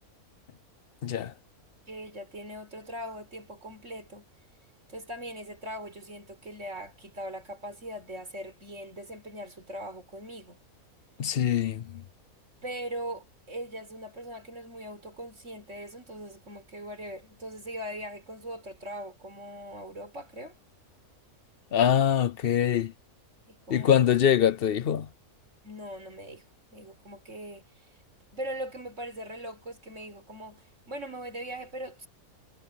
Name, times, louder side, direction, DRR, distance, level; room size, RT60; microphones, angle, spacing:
voice 1, 1.0-1.3 11.2-12.0 21.7-22.9 23.7-25.1, left 9 dB, 55° left, 0.7 m, -24 dB
voice 2, 1.9-4.3 4.9-10.6 12.6-20.6 23.5-23.9 25.6-27.9 28.3-32.1, equal, 55° right, 5.1 m, -40 dB
omnidirectional pair, 1.6 m